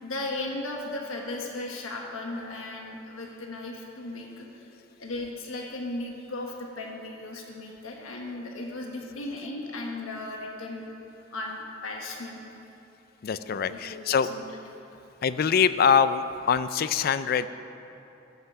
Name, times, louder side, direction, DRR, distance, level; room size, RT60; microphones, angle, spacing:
voice 1, 0.0-4.4 5.0-10.8 11.3-12.4 13.5-14.4, left 2 dB, 80° left, 0 dB, 1.2 m, -36 dB
voice 2, 13.2-14.3 15.2-17.5, left 7 dB, 45° left, 13 dB, 0.3 m, -24 dB
13.0 x 5.9 x 6.8 m, 2.9 s
head